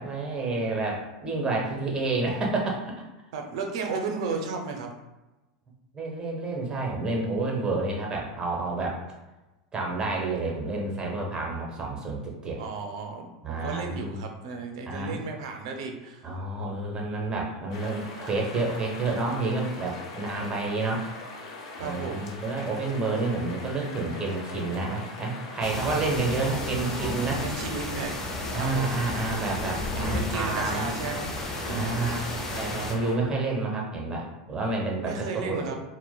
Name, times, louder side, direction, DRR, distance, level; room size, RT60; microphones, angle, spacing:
voice 1, 0.0-2.9 5.9-9.0 9.7-12.6 13.4-14.2 14.9-15.2 16.2-21.0 21.8-27.4 28.5-30.9 31.7-32.2 32.5-35.8, right 3 dB, 25° right, -1 dB, 0.8 m, -29 dB
voice 2, 3.3-4.9 12.6-16.3 21.8-22.4 26.8-28.1 28.5-29.0 30.0-31.4 31.6-32.3 35.0-35.8, right 4 dB, 70° right, 3 dB, 0.5 m, -34 dB
sound 1, 17.7-33.1, left 2 dB, 70° left, 0.7 m, -41 dB
sound 2, 25.6-32.9, left 1 dB, 15° left, 0.8 m, -33 dB
4.2 x 2.1 x 2.2 m, 1.1 s
hypercardioid pair, 95°, 3 cm